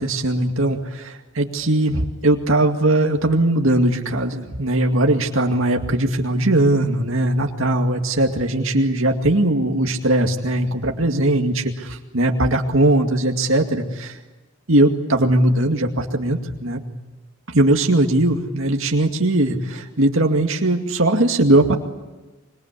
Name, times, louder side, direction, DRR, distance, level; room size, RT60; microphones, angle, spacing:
voice 1, 0.0-14.1 14.7-16.8 17.5-21.8, right 1 dB, 70° right, 3 dB, 2.3 m, -19 dB
25.5 x 23.0 x 8.4 m, 1.2 s
head